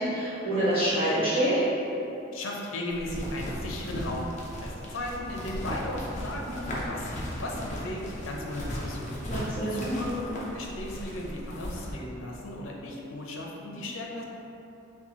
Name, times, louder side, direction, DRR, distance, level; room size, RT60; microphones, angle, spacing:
voice 1, 0.0-1.5 9.3-9.8, right 1 dB, 30° right, -15 dB, 1.5 m, -26 dB
voice 2, 2.3-4.3 4.6-9.2 9.7-14.2, left 1 dB, 80° left, -1 dB, 0.7 m, -36 dB
sound 1, 2.9-11.9, equal, 35° left, 0.7 m, -37 dB
4.3 x 3.9 x 3.0 m, 2.9 s
head